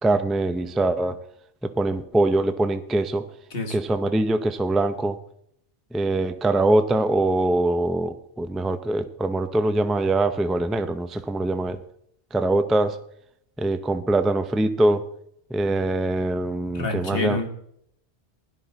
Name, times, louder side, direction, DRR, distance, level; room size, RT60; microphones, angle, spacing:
voice 1, 0.0-1.2 1.6-3.3 3.7-5.2 5.9-11.8 12.3-13.0 13.6-15.1 15.5-17.4, right 2 dB, ahead, 10 dB, 0.3 m, -23 dB
voice 2, 16.7-17.5, left 2 dB, 55° left, 5 dB, 1.7 m, -27 dB
16.5 x 11.0 x 3.8 m, 0.73 s
omnidirectional pair, 1.2 m